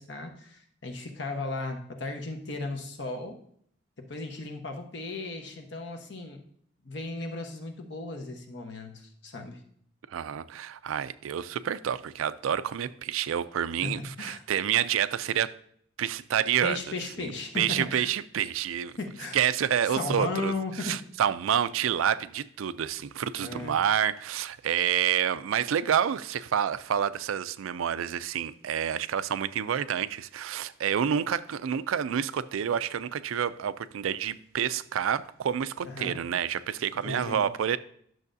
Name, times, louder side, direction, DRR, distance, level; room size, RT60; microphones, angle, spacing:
voice 1, 0.0-3.4 4.0-6.4 6.8-9.6 13.8-14.4 16.6-18.1 19.0-19.4 19.9-20.9 23.4-23.8 35.8-36.2 37.0-37.5, left 3 dB, 60° left, 1.1 m, -36 dB
voice 2, 10.1-15.5 16.0-16.8 17.2-18.9 19.3-37.8, right 9 dB, 85° right, 0.4 m, -28 dB
10.5 x 6.4 x 2.6 m
head